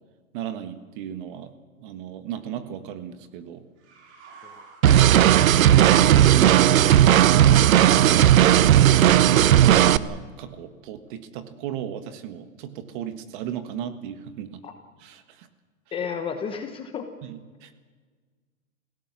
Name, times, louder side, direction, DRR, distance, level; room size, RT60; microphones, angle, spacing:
voice 1, 0.3-3.6 4.9-5.4 5.8-6.7 7.1-7.7 9.3-14.6 15.0-15.5 17.2-17.7, right 9 dB, 35° right, 9 dB, 1.6 m, -35 dB
sound 1, 3.8-5.8, right 4 dB, 55° right, 5.8 m, -47 dB
sound 2, 4.8-10.0, right 11 dB, 75° right, 0.9 m, -15 dB
voice 2, 15.9-17.1, left 6 dB, 15° left, 6 dB, 0.9 m, -32 dB
29.0 x 17.0 x 6.2 m, 1.5 s
hypercardioid pair, 150°, 41 cm